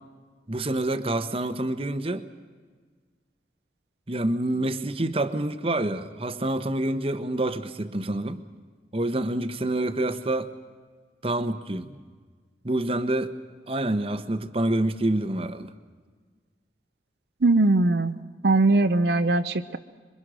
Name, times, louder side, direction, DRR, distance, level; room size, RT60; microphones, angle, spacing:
voice 1, 0.5-2.3 4.1-8.4 8.9-10.5 11.2-12.0 12.6-13.3 13.7-15.7, right 1 dB, 30° right, 10 dB, 1.0 m, -27 dB
voice 2, 17.4-18.1 18.4-19.8, right 2 dB, 65° right, 9 dB, 0.7 m, -20 dB
26.5 x 23.5 x 6.2 m, 1.5 s
head